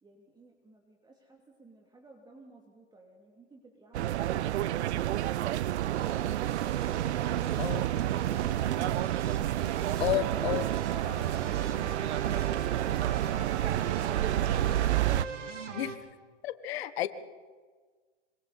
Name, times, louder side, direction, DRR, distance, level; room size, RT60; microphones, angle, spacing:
voice 1, 0.0-4.7, right 2 dB, 10° right, 0 dB, 2.7 m, -53 dB
sound 1, 3.9-15.3, right 13 dB, 65° right, 0.7 m, -29 dB
sound 2, 5.9-16.0, right 5 dB, 80° right, 3.0 m, -40 dB
voice 2, 10.0-10.6 15.7-15.9 16.4-17.1, left 13 dB, 55° left, 12 dB, 1.5 m, -31 dB
25.5 x 25.0 x 4.2 m, 1.5 s
hypercardioid pair, 110°, 36 cm